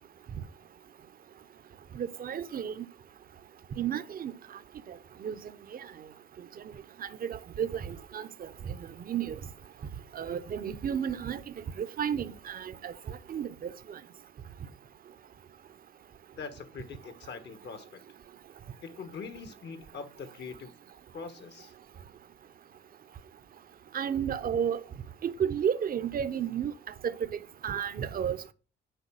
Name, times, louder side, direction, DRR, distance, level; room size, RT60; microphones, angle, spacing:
voice 1, 2.0-2.8 3.8-4.3 5.2-5.3 7.0-8.8 9.1-9.4 10.1-13.7 23.9-24.8 25.2-26.7 27.0-27.1 27.6-28.5, right 8 dB, 45° right, 0.7 m, -32 dB
voice 2, 16.3-18.0 18.8-20.7 21.1-21.7, left 5 dB, 60° left, 1.3 m, -43 dB
6.7 x 4.6 x 6.2 m
cardioid pair, 90°, 20 cm